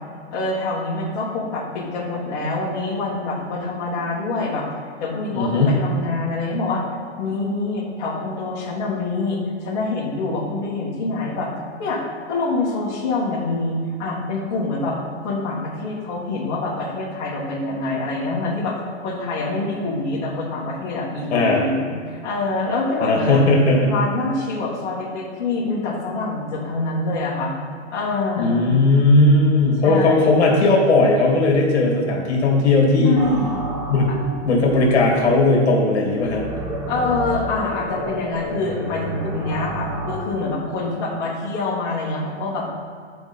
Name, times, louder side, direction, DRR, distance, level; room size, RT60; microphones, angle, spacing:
voice 1, 0.3-4.7 5.0-6.9 7.2-11.5 11.8-23.4 23.9-27.5 27.9-28.7 29.8-30.4 33.0-33.6 36.9-42.7, left 3 dB, 35° left, -7 dB, 1.9 m, -25 dB
voice 2, 5.3-5.7 21.3-21.6 23.0-23.9 28.4-33.2 33.9-34.1 34.5-36.5, left 2 dB, 65° left, -1 dB, 2.3 m, -17 dB
sound 1, 33.2-40.1, right 1 dB, 10° right, 0.9 m, -31 dB
10.5 x 5.0 x 4.2 m, 2.1 s
hypercardioid pair, 155°, 35 cm